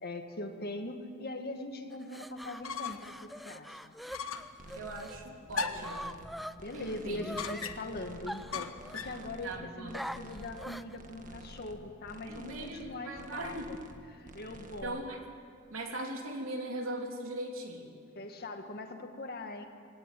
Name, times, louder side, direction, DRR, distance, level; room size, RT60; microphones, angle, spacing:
voice 1, 0.0-3.1 3.5-4.0 6.6-9.5 9.8-13.8 14.1-15.0 18.2-19.7, left 2 dB, 50° left, 5 dB, 1.9 m, -41 dB
sound 1, 1.9-5.2 5.5-7.7 8.3-9.3 9.9-11.0, equal, ahead, 0.5 m, -44 dB
sound 2, 2.4-3.2 3.5-3.6 4.1-4.6 5.5-6.0 7.4-8.0 8.5-9.2, left 5 dB, 80° left, 1.3 m, -37 dB
sound 3, 4.6-5.2 5.5-6.3 6.6-7.4 7.7-8.5 8.8-9.6 9.9-10.7 11.0-11.7 12.1-12.9 13.1-14.0 14.2-14.8, right 1 dB, 40° right, 1.6 m, -50 dB
voice 2, 4.7-6.1 6.7-7.3 9.4-10.0 12.3-13.7 14.8-15.2 15.7-18.0, right 1 dB, 80° right, 2 dB, 3.1 m, -40 dB
21.0 x 18.0 x 9.3 m, 2.3 s
head